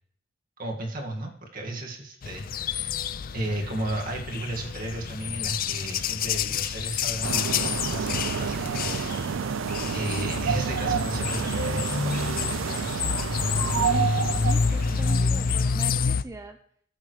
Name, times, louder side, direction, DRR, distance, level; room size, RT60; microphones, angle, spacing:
voice 1, 0.6-3.1 3.3-9.2 9.9-13.0, right 1 dB, 45° right, 0 dB, 1.9 m, -34 dB
sound 1, 2.2-16.2, left 6 dB, 45° left, 0.4 m, -28 dB
sound 2, 7.2-15.3, right 7 dB, 75° right, 0.4 m, -29 dB
voice 2, 13.6-14.1 14.4-16.6, right 1 dB, 15° right, 5 dB, 0.5 m, -39 dB
19.0 x 7.2 x 3.2 m, 0.65 s
head